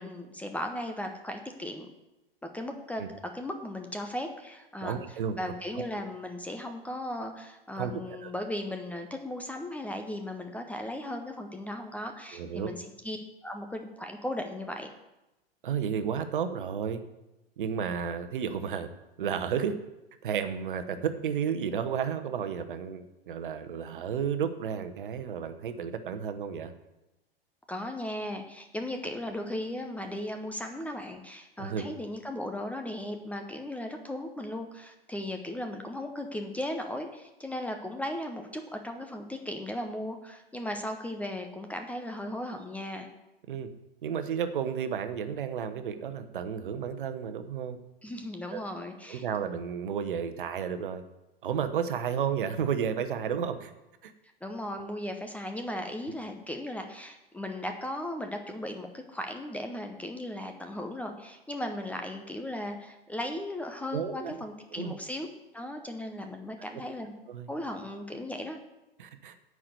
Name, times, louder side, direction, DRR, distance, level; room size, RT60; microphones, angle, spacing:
voice 1, 0.0-1.9 2.4-5.0 5.4-13.2 13.4-14.9 27.7-43.1 48.0-49.3 54.4-65.3 65.5-67.1 67.5-68.6, left 1 dB, 5° left, 5 dB, 0.7 m, -37 dB
voice 2, 4.8-5.4 7.8-8.3 12.3-12.7 15.6-17.0 17.6-18.9 19.2-19.7 20.2-26.7 31.6-31.8 43.5-43.7 44.0-47.8 48.5-48.6 49.1-51.0 51.4-53.7 54.0-54.1 63.9-64.4 64.8-64.9 67.3-67.5 69.0-69.3, right 7 dB, 60° right, 9 dB, 1.0 m, -32 dB
9.7 x 4.9 x 7.9 m, 0.96 s
figure-of-eight pair, 95°, 30 cm